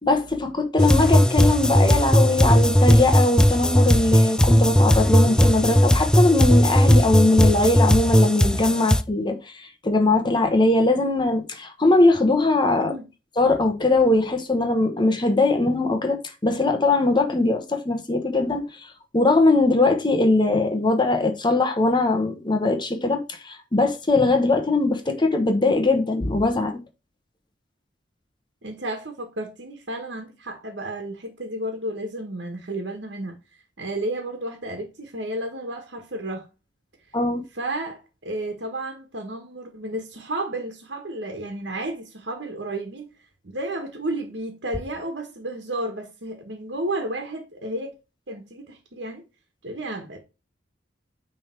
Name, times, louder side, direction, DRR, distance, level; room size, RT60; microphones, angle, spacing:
voice 1, 0.0-12.9 13.4-26.8 37.1-37.4, left 2 dB, 25° left, 1.1 m, -21 dB
sound 1, 0.8-9.0, equal, 5° left, 0.3 m, -17 dB
voice 2, 28.6-33.4 33.8-36.5 37.5-43.0 43.4-47.9 48.3-49.2 49.6-50.2, right 1 dB, 70° right, 1.4 m, -32 dB
9.5 x 3.5 x 4.4 m
head